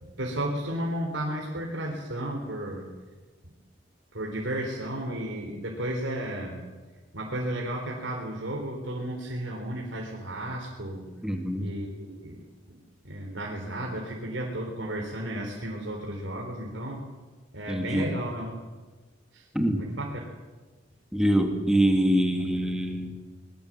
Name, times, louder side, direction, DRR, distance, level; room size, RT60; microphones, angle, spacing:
voice 1, 0.0-2.9 3.4-3.5 4.1-6.6 7.1-11.1 11.6-12.4 12.7-12.8 13.0-17.0 17.5-18.5 19.3-19.5 19.7-20.3, right 1 dB, 85° right, 0 dB, 3.9 m, -33 dB
voice 2, 11.2-11.7 17.7-18.1 19.5-19.8 21.1-23.1, equal, 5° right, 3 dB, 2.4 m, -24 dB
24.5 x 21.5 x 7.6 m, 1.3 s
head